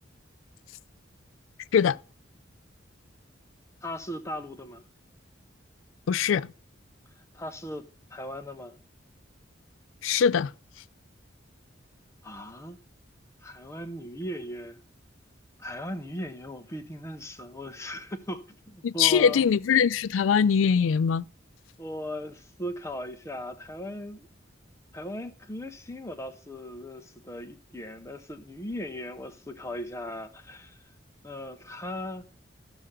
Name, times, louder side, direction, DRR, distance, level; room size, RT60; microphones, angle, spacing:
voice 1, 3.8-4.8 7.3-8.7 12.2-12.8 13.4-14.8 15.6-19.5 21.8-24.3 24.9-30.8 31.2-32.2, left 1 dB, 15° left, 0.7 m, -38 dB
voice 2, 6.1-6.5 10.0-10.5 18.8-21.2, left 7 dB, 80° left, 0.3 m, -22 dB
13.0 x 6.6 x 3.6 m
head